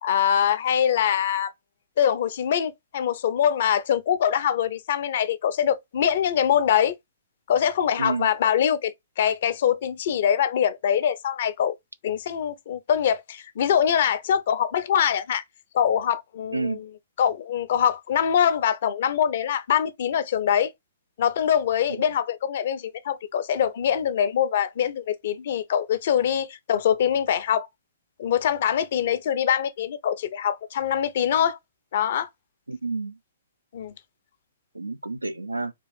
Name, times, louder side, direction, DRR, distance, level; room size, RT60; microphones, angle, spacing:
voice 1, 0.0-1.5 2.0-6.9 7.5-11.7 12.0-15.4 15.7-16.8 17.2-20.7 21.2-27.7 28.2-31.6 31.9-32.3 33.7-33.9, left 9 dB, 50° left, 0.6 m, -23 dB
voice 2, 8.0-8.3 16.5-16.8 32.7-33.2 34.7-35.7, right 3 dB, 90° right, 0.4 m, -29 dB
3.7 x 2.4 x 3.3 m
figure-of-eight pair, 120°, 0 cm